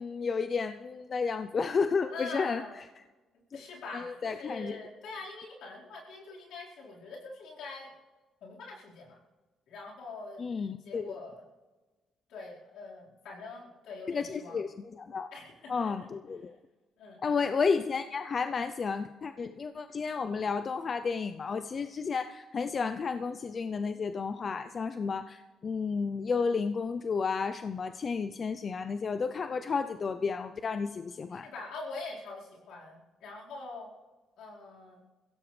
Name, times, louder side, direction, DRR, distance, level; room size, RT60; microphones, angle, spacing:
voice 1, 0.0-2.8 3.9-4.7 10.4-11.1 14.1-15.3 15.7-16.5 17.2-31.5, left 5 dB, 45° left, 10 dB, 0.6 m, -32 dB
voice 2, 2.1-2.7 3.5-7.9 8.4-9.2 9.7-10.4 10.8-11.4 12.3-14.6 15.3-15.9 17.0-17.2 31.3-33.9 34.4-35.0, left 3 dB, 80° left, -4 dB, 4.7 m, -44 dB
22.0 x 16.0 x 3.4 m, 1.2 s
cardioid pair, 90°, 0 cm